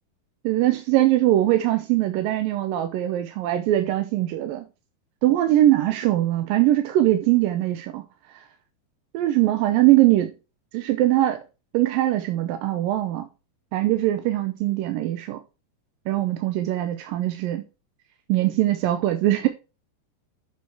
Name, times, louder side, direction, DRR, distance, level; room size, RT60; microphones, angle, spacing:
voice 1, 0.4-4.7 5.2-8.0 8.3-8.4 9.1-10.3 10.7-11.4 11.7-13.3 13.7-15.4 16.1-17.6 18.3-19.5, right 14 dB, 75° right, 2.1 m, -21 dB
8.5 x 6.2 x 4.7 m
omnidirectional pair, 4.8 m